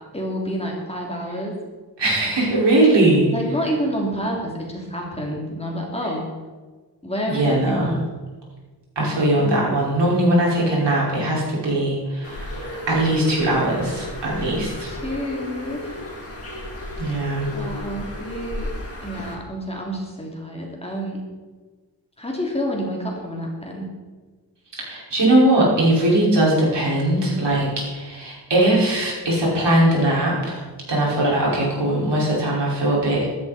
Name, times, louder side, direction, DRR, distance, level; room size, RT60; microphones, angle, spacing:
voice 1, 0.1-1.6 3.3-6.3 7.0-8.0 9.0-9.5 14.9-16.0 17.5-18.7 19.0-21.2 22.2-23.9, equal, 15° left, -2 dB, 3.1 m, -28 dB
voice 2, 2.0-3.3 7.3-7.9 9.0-14.9 17.0-17.5 24.8-33.3, right 1 dB, 85° right, -4 dB, 5.6 m, -20 dB
Bird, 12.2-19.3, left 1 dB, 35° left, 3.5 m, -33 dB
15.0 x 12.5 x 4.4 m, 1.3 s
wide cardioid pair, 140°, 41 cm